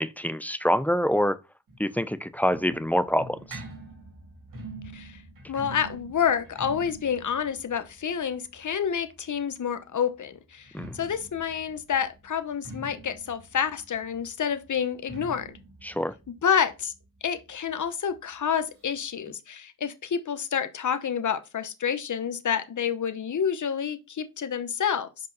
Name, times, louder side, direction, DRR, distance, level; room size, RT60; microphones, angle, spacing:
voice 1, 0.0-1.4 1.8-3.6 10.7-10.9 15.8-16.1, equal, 5° left, 0.6 m, -26 dB
sound 1, 1.7-9.4 10.5-17.9 18.2-18.3 18.5-18.6 19.3-19.4, right 2 dB, 65° right, 2.9 m, -45 dB
voice 2, 5.5-10.7 10.9-15.5 16.4-16.9 17.2-25.1, left 7 dB, 55° left, 1.0 m, -28 dB
5.3 x 5.2 x 4.0 m
cardioid pair, 55°, 35 cm